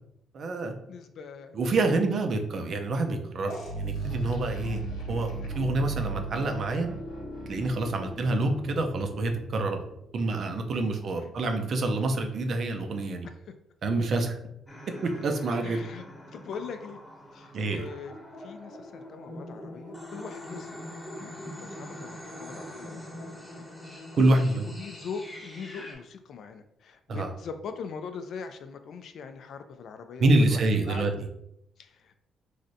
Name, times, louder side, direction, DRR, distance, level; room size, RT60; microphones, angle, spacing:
voice 1, 0.3-0.7 1.5-4.8 5.1-6.9 7.5-9.8 10.1-13.3 13.8-14.4 15.0-15.8 17.5-17.9 24.2-24.7 27.1-27.3 30.2-31.1, right 2 dB, 55° right, 5 dB, 0.5 m, -27 dB
voice 2, 0.9-1.7 7.7-8.0 10.7-11.3 13.2-13.3 15.6-16.0 16.3-17.0 17.3-20.8 21.2-30.6 30.9-31.1 31.8-32.1, left 6 dB, 65° left, 8 dB, 0.3 m, -41 dB
sound 1, 3.5-10.1, right 2 dB, 90° left, 0.9 m, -36 dB
sound 2, 14.7-26.0, left 1 dB, 10° left, 0.9 m, -43 dB
3.2 x 2.5 x 2.6 m, 0.77 s
cardioid pair, 90°, 0 cm